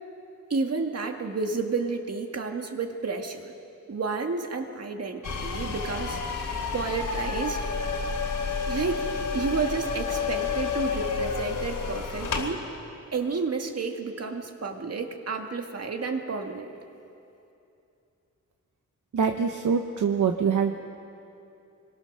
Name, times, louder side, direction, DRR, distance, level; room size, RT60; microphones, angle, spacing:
voice 1, 0.5-3.5 3.9-7.7 8.7-9.1 9.3-12.7 13.1-16.7, right 4 dB, 50° right, 4 dB, 2.0 m, -31 dB
sound 1, 5.2-12.5, left 5 dB, 80° left, 3.1 m, -30 dB
voice 2, 19.1-20.7, right 6 dB, 70° right, 5 dB, 1.1 m, -24 dB
25.0 x 22.5 x 6.6 m, 2.7 s
wide cardioid pair, 105°, 31 cm